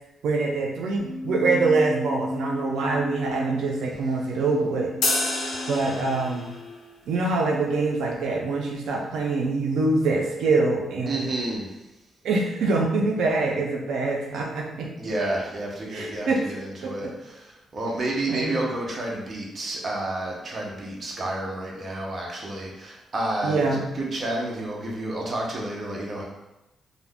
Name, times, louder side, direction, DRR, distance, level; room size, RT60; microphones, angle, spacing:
voice 1, 0.2-4.9 5.7-6.5 7.1-11.2 12.2-14.9 15.9-16.4 16.8-17.1 18.3-18.6 23.4-23.8, right 3 dB, 85° right, -1 dB, 0.4 m, -24 dB
Keyboard (musical), 0.9-6.9, left 1 dB, 10° left, 1.0 m, -34 dB
sound 1, 5.0-6.6, left 2 dB, 80° left, 0.6 m, -28 dB
voice 2, 11.1-11.8 15.0-26.2, right 1 dB, 35° right, -2 dB, 0.6 m, -30 dB
2.4 x 2.1 x 3.4 m, 0.94 s
cardioid pair, 150°, 0 cm